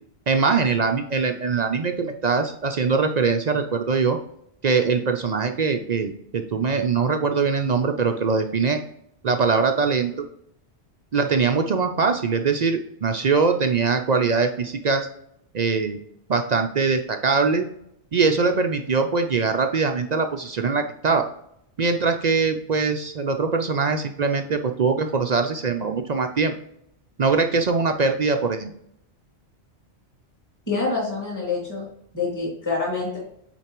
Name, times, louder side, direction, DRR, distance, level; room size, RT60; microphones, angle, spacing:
voice 1, 0.3-4.2 4.6-8.8 9.2-10.1 11.1-15.1 15.5-16.0 16.3-17.7 18.1-21.3 21.8-26.5 27.2-28.7, right 4 dB, 50° right, 5 dB, 0.5 m, -22 dB
voice 2, 30.7-31.8 32.1-33.2, left 3 dB, 15° left, -4 dB, 2.4 m, -26 dB
8.9 x 4.4 x 3.0 m, 0.73 s
omnidirectional pair, 1.1 m